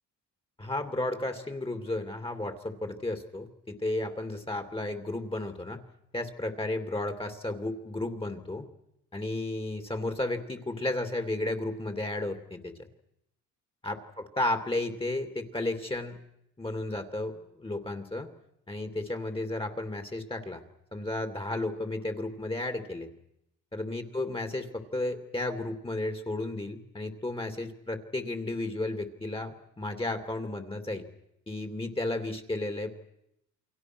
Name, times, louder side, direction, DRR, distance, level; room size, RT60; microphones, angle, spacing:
voice 1, 0.6-5.8 6.1-8.7 9.1-12.7 13.8-14.0 14.4-16.2 16.6-18.3 18.7-20.6 20.9-23.1 23.7-31.1 31.5-32.9, left 2 dB, 15° left, 7 dB, 2.8 m, -33 dB
29.0 x 22.5 x 6.3 m, 0.81 s
supercardioid pair, 75°, 35 cm